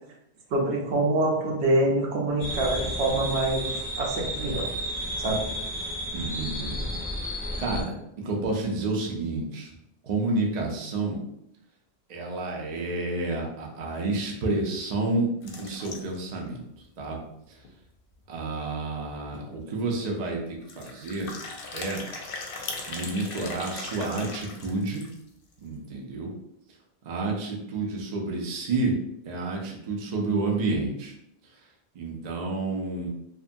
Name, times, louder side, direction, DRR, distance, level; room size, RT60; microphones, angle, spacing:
voice 1, 0.5-4.6 5.2-5.4, right 2 dB, 80° right, -1 dB, 0.9 m, -25 dB
sound 1, 2.4-7.8, equal, 15° left, 0.9 m, -32 dB
voice 2, 6.1-6.9 7.6-9.7 10.0-11.2 12.1-16.7 17.0-17.2 18.3-21.3 21.7-22.0 22.9-25.0 25.6-26.3 27.0-28.9 29.3-31.1 31.9-33.1, right 2 dB, 50° right, 0 dB, 0.5 m, -30 dB
sound 2, 15.4-16.3 16.8-16.9 17.1-17.2 17.6-17.7 19.0-19.1 19.3-19.6 20.6-25.3, left 3 dB, 65° left, 0.7 m, -39 dB
2.6 x 2.4 x 2.6 m, 0.79 s
omnidirectional pair, 1.1 m